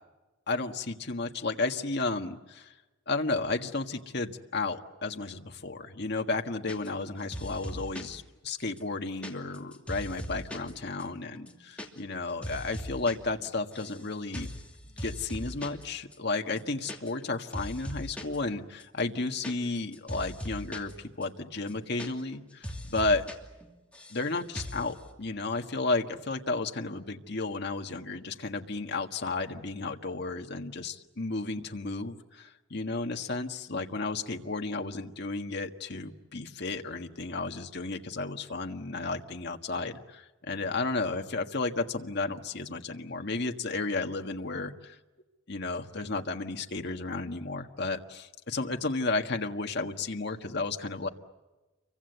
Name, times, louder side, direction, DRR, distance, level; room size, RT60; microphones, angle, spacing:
voice 1, 0.5-2.7 3.1-14.6 14.8-23.2 24.1-45.0 45.5-51.1, left 3 dB, 55° left, 4 dB, 1.6 m, -33 dB
sound 1, 6.7-7.1 7.3-8.2 8.6-10.7 11.0-11.1 11.4-11.9 12.1-13.1 13.4-14.0 14.3-14.7 15.0-15.8 16.1-16.2 16.5-17.3 17.5-18.4 18.8-20.9 21.2-21.3 21.6-22.4 22.6-23.3 23.6-24.2 24.5-24.9, equal, 5° left, 2.8 m, -39 dB
29.5 x 24.0 x 8.1 m, 1.1 s
head